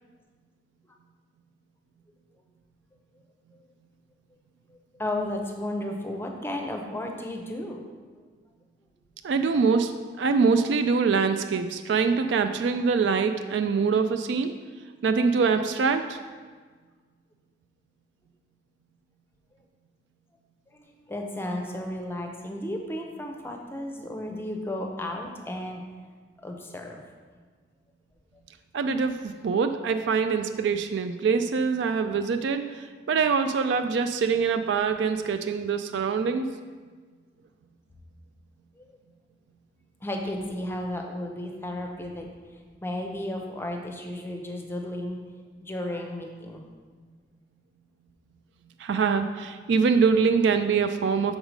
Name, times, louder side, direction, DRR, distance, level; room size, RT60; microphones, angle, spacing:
voice 1, 4.7-7.9 8.1-8.2 20.7-25.8 26.4-27.0 30.1-30.2 38.8-38.9 40.0-42.3 42.8-45.2 45.6-46.6, left 1 dB, 10° left, 2 dB, 0.6 m, -33 dB
voice 2, 9.2-9.9 10.2-14.5 15.0-16.2 28.7-36.5 48.8-51.4, right 5 dB, 75° right, 8 dB, 0.3 m, -24 dB
6.3 x 4.8 x 5.1 m, 1.5 s
head